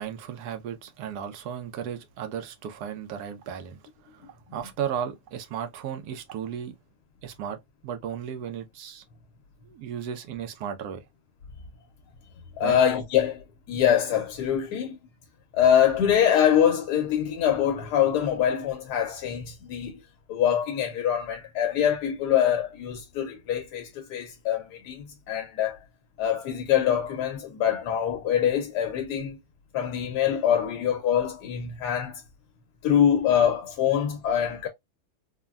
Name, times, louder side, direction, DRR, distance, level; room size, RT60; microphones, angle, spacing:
voice 1, 0.0-6.8 7.2-7.6 7.8-9.0 9.6-11.0 12.6-12.8, right 8 dB, 85° right, 1.2 m, -35 dB
voice 2, 12.6-15.0 15.5-20.0 20.3-25.8 26.2-29.4 29.7-32.2 32.8-34.7, left 9 dB, 90° left, 1.2 m, -24 dB
3.5 x 2.1 x 2.2 m
omnidirectional pair, 1.7 m